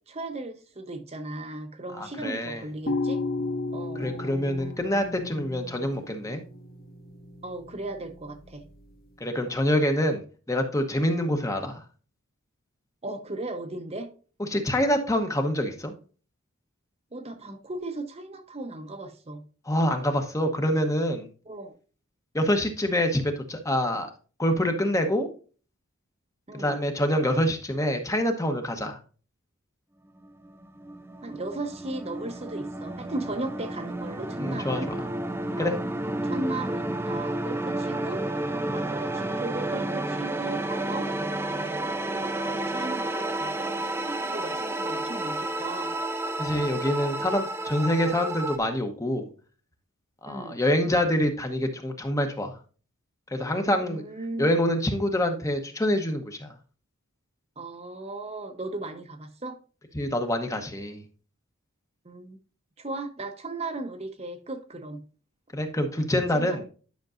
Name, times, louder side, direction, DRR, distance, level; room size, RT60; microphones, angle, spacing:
voice 1, 0.1-3.2 3.7-4.1 7.4-8.6 13.0-14.1 17.1-19.4 21.5-21.7 26.5-26.8 31.2-34.9 35.5-35.7 36.0-38.3 38.7-41.1 41.6-41.9 42.1-46.0 50.3-50.6 53.6-54.6 57.6-59.6 62.0-62.4 62.8-65.0 66.3-66.6, right 2 dB, 30° right, 6 dB, 0.8 m, -36 dB
voice 2, 2.0-2.6 3.9-6.4 9.2-10.2 10.5-11.8 14.5-15.9 19.7-21.3 22.3-24.1 24.4-25.3 26.5-29.0 34.4-35.0 35.6-35.8 38.7-38.9 46.4-49.3 50.2-52.6 53.3-54.0 54.4-56.5 59.9-61.0 65.5-66.6, left 1 dB, 15° left, 5 dB, 0.9 m, -26 dB
sound 1, 2.9-9.0, left 2 dB, 45° left, 1.1 m, -34 dB
sound 2, 30.2-48.6, right 2 dB, 10° right, 0.5 m, -31 dB
10.5 x 6.0 x 2.5 m, 0.37 s
head